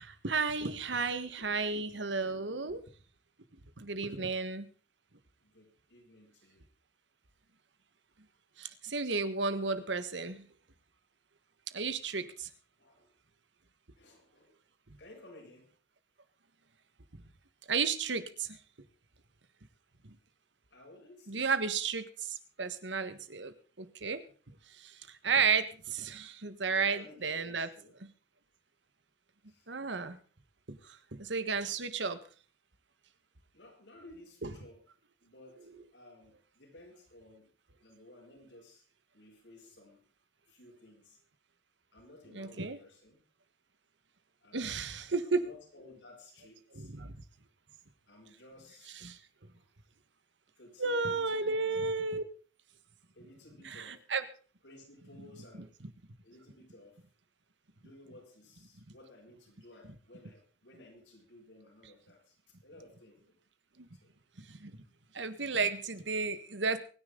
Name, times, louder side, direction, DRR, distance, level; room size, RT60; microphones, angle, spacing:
voice 1, 0.0-2.8 3.8-4.7 8.6-10.4 11.7-12.5 17.7-18.6 20.0-20.1 21.3-24.2 24.7-27.7 29.7-30.2 30.7-32.2 34.4-34.5 42.3-42.8 44.5-45.4 46.7-47.2 48.9-49.2 50.8-52.2 53.6-54.2 63.8-63.9 64.5-64.7 65.1-66.8, right 4 dB, 90° right, 12 dB, 1.5 m, -33 dB
voice 2, 4.0-4.4 5.4-6.6 12.8-13.1 14.0-14.5 15.0-15.7 20.7-21.6 26.7-28.0 29.5-29.7 33.5-34.8 35.2-37.5 37.8-38.8 39.1-40.0 40.5-41.2 41.9-43.2 44.4-44.9 45.2-46.9 48.1-49.1 49.5-49.7 50.6-51.8 53.1-54.0 54.6-55.8 56.2-57.0 57.7-62.4 62.6-63.3 64.0-64.1, left 1 dB, 85° left, -1 dB, 6.9 m, -56 dB
23.5 x 10.0 x 3.9 m, 0.38 s
head